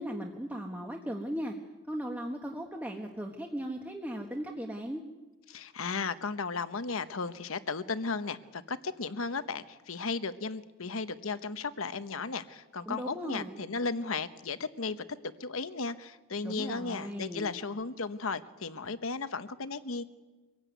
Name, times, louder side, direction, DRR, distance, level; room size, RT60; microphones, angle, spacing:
voice 1, 0.0-1.5 1.9-5.0 12.9-13.6 16.4-17.5, equal, 10° right, 1 dB, 1.4 m, -37 dB
voice 2, 5.5-15.0 15.4-20.0, left 4 dB, 70° left, 12 dB, 1.1 m, -35 dB
25.0 x 16.0 x 9.4 m, 1.2 s
head